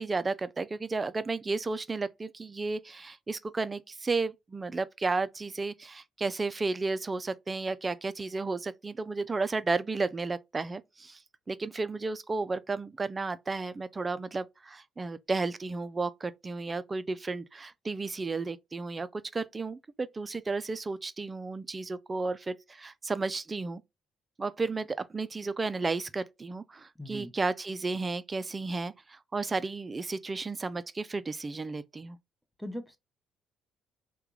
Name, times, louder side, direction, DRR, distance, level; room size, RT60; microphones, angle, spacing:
voice 1, 0.0-11.2 11.5-23.8 24.4-32.2, right 3 dB, 30° right, 0.4 m, -33 dB
voice 2, 27.0-27.3 32.6-33.0, equal, 5° right, 0.8 m, -39 dB
3.5 x 2.3 x 3.0 m
hypercardioid pair, 55°, 0 cm